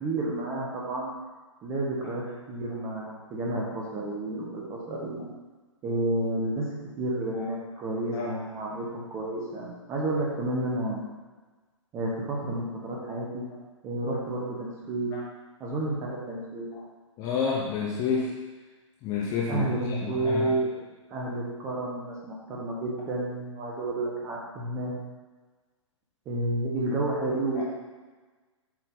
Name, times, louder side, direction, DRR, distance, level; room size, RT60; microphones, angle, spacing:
voice 1, 0.0-1.1 1.6-5.3 5.8-6.7 7.0-11.1 11.9-13.4 13.8-15.1 15.6-16.7 19.5-20.7 21.1-24.9 26.2-27.6, right 2 dB, 15° right, -3 dB, 1.5 m, -30 dB
voice 2, 17.2-18.3 19.0-20.6 27.6-27.7, left 5 dB, 20° left, -3 dB, 0.8 m, -29 dB
7.6 x 4.3 x 4.0 m, 1.3 s
figure-of-eight pair, 120°, 16 cm